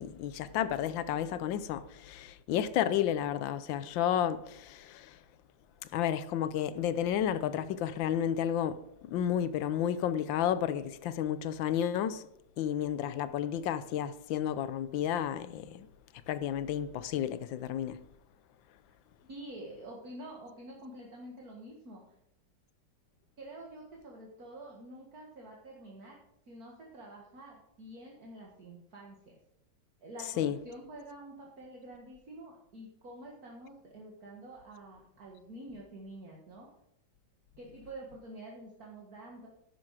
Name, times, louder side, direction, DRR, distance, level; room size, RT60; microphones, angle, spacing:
voice 1, 0.0-5.2 5.9-12.3 12.6-15.9 16.3-18.0 30.4-30.6, left 10 dB, 90° left, 1.4 m, -32 dB
voice 2, 19.2-22.1 23.4-26.2 26.5-29.4 30.0-36.7 37.6-39.5, right 1 dB, 55° right, 2.2 m, -48 dB
11.5 x 9.9 x 4.8 m
omnidirectional pair, 2.0 m